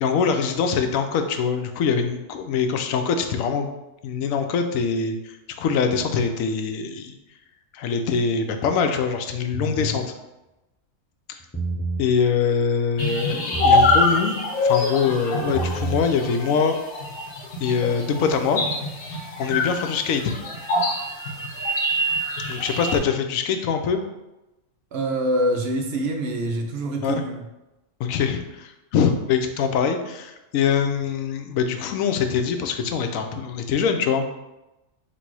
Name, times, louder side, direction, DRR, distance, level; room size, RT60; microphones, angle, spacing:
voice 1, 0.0-3.7 4.0-7.1 7.7-10.0 12.0-14.4 14.6-16.8 17.6-18.6 19.4-20.3 22.5-24.0 27.0-27.2 28.0-34.4, left 6 dB, 85° left, 6 dB, 1.0 m, -23 dB
sound 1, 9.5-10.0 11.4-12.1 13.5-14.1 15.4-16.1, right 2 dB, 15° left, 0.5 m, -28 dB
sound 2, 13.0-23.0, left 2 dB, 50° left, 0.9 m, -24 dB
voice 2, 24.9-27.5, right 1 dB, 65° right, 3 dB, 0.7 m, -25 dB
4.1 x 2.6 x 4.6 m, 0.97 s
omnidirectional pair, 1.4 m